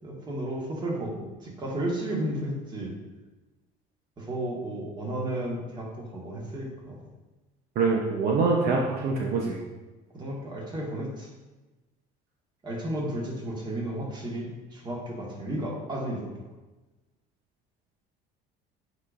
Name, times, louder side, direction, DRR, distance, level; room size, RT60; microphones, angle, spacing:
voice 1, 0.0-2.9 4.2-6.9 8.5-8.7 10.1-11.3 12.6-16.3, right 1 dB, 25° right, -2 dB, 1.7 m, -33 dB
voice 2, 7.8-9.6, right 4 dB, 65° right, 0 dB, 0.8 m, -24 dB
8.0 x 5.0 x 2.6 m, 1.2 s
cardioid pair, 130°, 17 cm